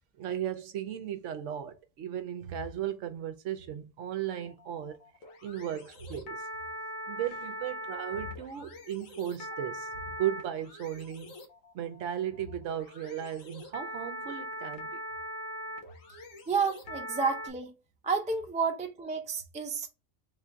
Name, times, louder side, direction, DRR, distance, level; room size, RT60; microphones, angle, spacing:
voice 1, 0.2-5.0 5.4-6.5 7.1-11.3 11.7-15.0, right 10 dB, 70° right, 0.9 m, -36 dB
sound 1, 4.3-17.5, equal, 80° left, 1.4 m, -42 dB
voice 2, 16.5-17.7 18.0-19.9, right 5 dB, 10° right, 0.5 m, -30 dB
3.6 x 2.5 x 4.4 m
omnidirectional pair, 1.4 m